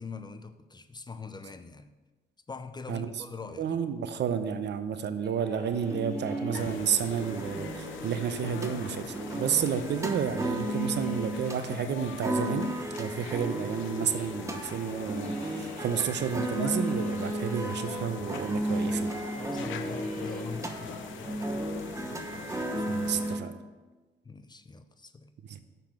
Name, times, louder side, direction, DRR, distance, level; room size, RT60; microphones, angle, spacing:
voice 1, 0.0-1.9 2.5-3.7 19.4-21.6 24.2-25.3, left 4 dB, 20° left, 11 dB, 0.5 m, -42 dB
voice 2, 3.6-12.7 13.0-19.1 22.9-23.6 25.5-25.6, right 8 dB, 60° right, 10 dB, 0.7 m, -31 dB
sound 1, 5.2-18.0 18.3-21.7, equal, 5° left, 3.1 m, -49 dB
sound 2, 5.8-23.4, right 1 dB, 15° right, 1.0 m, -34 dB
sound 3, 6.5-23.3, left 8 dB, 80° left, 0.7 m, -43 dB
6.8 x 5.7 x 7.3 m, 1.2 s
cardioid pair, 90°, 20 cm